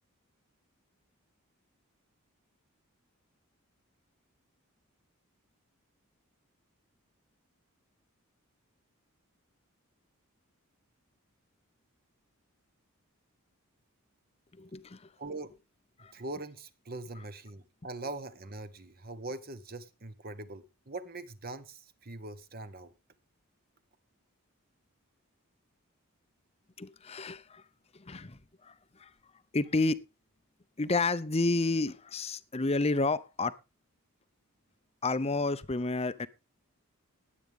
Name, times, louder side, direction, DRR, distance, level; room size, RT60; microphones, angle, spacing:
voice 1, 14.5-15.1 16.0-16.1 26.8-27.6 27.9-28.7 29.0-29.1 29.5-30.0 30.8-33.6 35.0-36.3, left 3 dB, 25° left, 0.7 m, -30 dB
voice 2, 15.2-15.6 16.1-22.9, right 2 dB, 40° right, 1.3 m, -42 dB
20.0 x 8.5 x 3.6 m
head